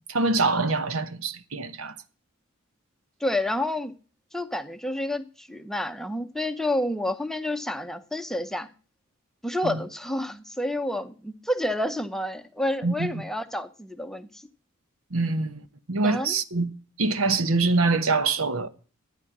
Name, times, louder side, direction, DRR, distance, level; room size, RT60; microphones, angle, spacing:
voice 1, 0.1-1.9 9.6-9.8 12.8-13.2 15.1-16.7 17.0-18.7, right 3 dB, 75° right, 1.1 m, -25 dB
voice 2, 3.2-3.9 4.3-8.7 9.4-14.5 16.0-16.4, left 1 dB, ahead, 0.7 m, -29 dB
13.0 x 9.6 x 6.0 m
head